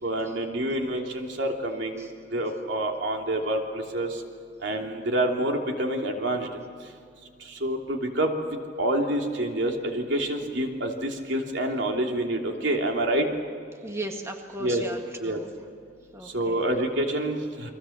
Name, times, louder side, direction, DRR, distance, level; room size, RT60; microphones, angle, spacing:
voice 1, 0.0-4.2 4.6-6.5 6.8-6.9 7.4-13.3 14.6-14.8 15.2-15.4 16.2-17.7, right 1 dB, 70° right, 2 dB, 3.1 m, -27 dB
voice 2, 13.7-15.5 16.1-16.6, right 1 dB, 15° right, 3 dB, 1.8 m, -37 dB
30.0 x 23.0 x 7.3 m, 2.3 s
head